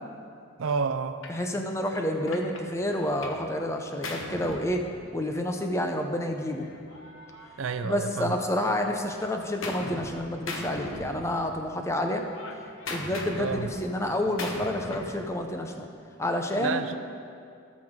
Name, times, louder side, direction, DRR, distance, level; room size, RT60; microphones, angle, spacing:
voice 1, 0.6-1.2 7.6-8.4 13.4-13.7 16.6-17.0, right 5 dB, 75° right, 0.5 m, -29 dB
Gunshot gunfire, 1.2-1.4 1.9-3.5 3.7-5.4 6.4-8.2 8.6-10.2 10.5-11.7 12.0-15.2, left 2 dB, 70° left, 1.0 m, -39 dB
voice 2, 1.3-4.8 5.1-6.7 7.8-12.3 12.9-15.9 16.2-16.8, left 1 dB, 15° left, 0.6 m, -29 dB
18.0 x 6.1 x 3.7 m
head